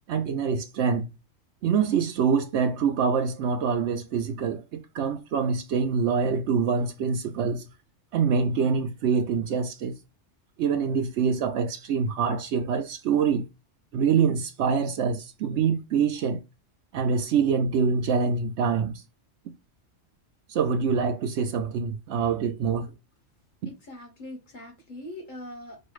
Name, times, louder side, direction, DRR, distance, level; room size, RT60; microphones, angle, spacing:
voice 1, 0.1-1.1 1.6-7.7 8.1-10.0 10.6-13.5 13.9-16.4 16.9-19.0 20.5-22.9, right 6 dB, 70° right, 0.8 m, -25 dB
voice 2, 23.7-25.9, left 1 dB, 40° left, 1.3 m, -42 dB
5.3 x 2.3 x 3.1 m
omnidirectional pair, 1.3 m